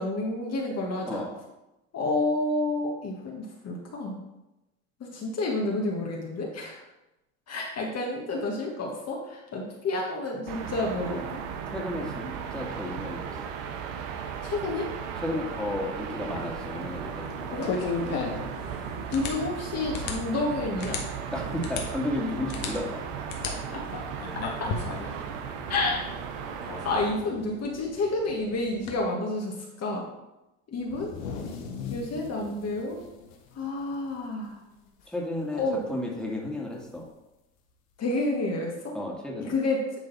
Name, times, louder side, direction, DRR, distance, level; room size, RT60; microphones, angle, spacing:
voice 1, 0.0-1.2 1.9-4.2 5.0-6.8 7.5-11.4 14.4-14.9 17.5-17.8 19.1-21.0 23.7-23.8 25.7-26.0 26.8-30.1 30.7-31.1 31.9-33.0 33.5-34.5 35.6-35.8 38.0-39.0 39.5-39.9, left 2 dB, 40° left, -1 dB, 1.7 m, -29 dB
voice 2, 1.0-1.3 11.0-11.4 11.7-13.4 15.2-17.7 21.3-23.0 35.1-37.1 38.9-39.5, left 1 dB, ahead, -2 dB, 2.1 m, -33 dB
sound 1, 10.5-27.1, right 7 dB, 75° right, 1.0 m, -36 dB
sound 2, 16.2-29.0, left 4 dB, 60° left, 1.6 m, -37 dB
sound 3, 30.8-34.5 34.8-35.0 35.4-35.8 37.0-37.1 38.1-38.2, left 5 dB, 85° left, 1.2 m, -40 dB
10.5 x 3.9 x 4.1 m, 0.96 s
hypercardioid pair, 85°, 39 cm